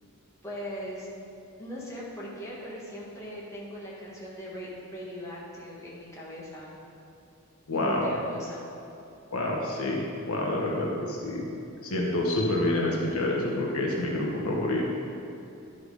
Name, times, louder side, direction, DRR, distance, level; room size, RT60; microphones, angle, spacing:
voice 1, 0.4-1.1 1.6-6.8 7.7-8.7, equal, 15° left, -6 dB, 1.7 m, -39 dB
voice 2, 7.7-8.1 9.3-11.5 11.8-15.0, left 1 dB, 80° left, -2 dB, 1.5 m, -28 dB
10.0 x 6.2 x 5.0 m, 2.8 s
head